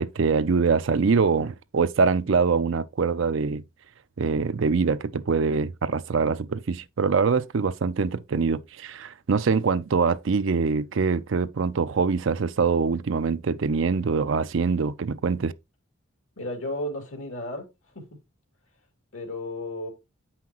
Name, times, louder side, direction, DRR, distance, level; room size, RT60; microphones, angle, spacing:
voice 1, 0.0-3.6 4.2-15.5, right 5 dB, 70° right, 0.5 m, -24 dB
voice 2, 16.4-17.7 17.9-18.2 19.1-19.9, left 1 dB, 80° left, 2.5 m, -33 dB
8.5 x 5.7 x 2.9 m
head